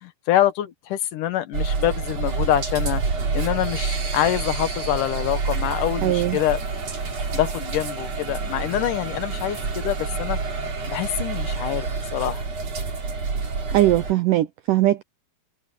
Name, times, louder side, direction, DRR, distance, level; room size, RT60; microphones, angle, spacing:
voice 1, 0.0-3.0 3.3-6.6 7.3-10.4 10.9-12.4, left 12 dB, 65° left, 2.4 m, -25 dB
sound 1, 1.5-14.1, right 4 dB, 45° right, 4.1 m, -28 dB
voice 2, 6.0-6.4 13.7-15.0, right 15 dB, 75° right, 2.0 m, -20 dB
omnidirectional pair, 4.4 m